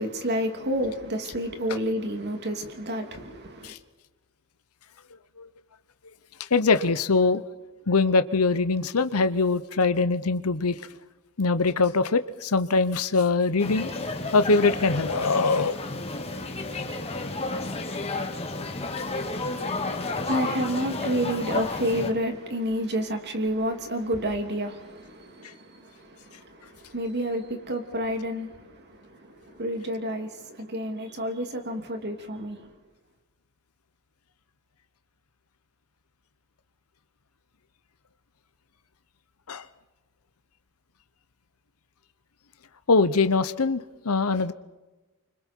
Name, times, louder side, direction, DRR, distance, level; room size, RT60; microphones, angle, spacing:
voice 1, 0.0-3.7 19.2-32.7, equal, 50° right, 2.9 m, -30 dB
voice 2, 6.4-7.4 7.9-10.8 11.4-13.9 14.3-15.8 39.5-39.6 42.9-44.5, left 4 dB, 75° left, 0.9 m, -22 dB
sound 1, 13.6-22.1, left 2 dB, 30° left, 2.3 m, -31 dB
29.0 x 25.5 x 4.6 m
head